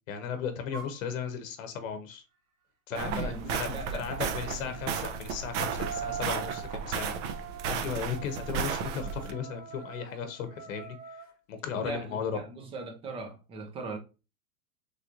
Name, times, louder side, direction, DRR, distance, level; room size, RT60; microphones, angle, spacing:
voice 1, 0.1-2.2 2.9-7.1 7.7-12.4, left 6 dB, 70° left, 0.8 m, -36 dB
sound 1, 0.7-1.0 3.9-11.3, right 7 dB, 75° right, 1.2 m, -43 dB
voice 2, 2.9-4.0 4.5-4.8 11.8-14.0, right 3 dB, 15° right, 0.4 m, -39 dB
sound 2, 3.0-9.3, right 6 dB, 55° right, 0.7 m, -34 dB
3.3 x 2.9 x 2.5 m
hypercardioid pair, 125°, 42 cm